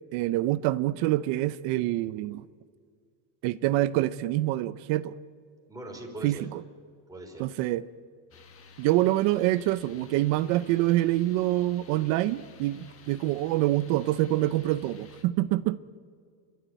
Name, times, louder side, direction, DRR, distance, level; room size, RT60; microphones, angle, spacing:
voice 1, 0.1-2.4 3.4-5.1 6.2-6.6 7.4-7.9 8.8-15.8, right 16 dB, 90° right, 13 dB, 0.8 m, -26 dB
voice 2, 5.7-6.4 7.1-7.5, right 2 dB, 10° right, 0 dB, 3.8 m, -40 dB
sound 1, 8.3-15.2, left 4 dB, 30° left, 1.6 m, -52 dB
28.5 x 12.5 x 9.5 m, 2.1 s
cardioid pair, 160°, 44 cm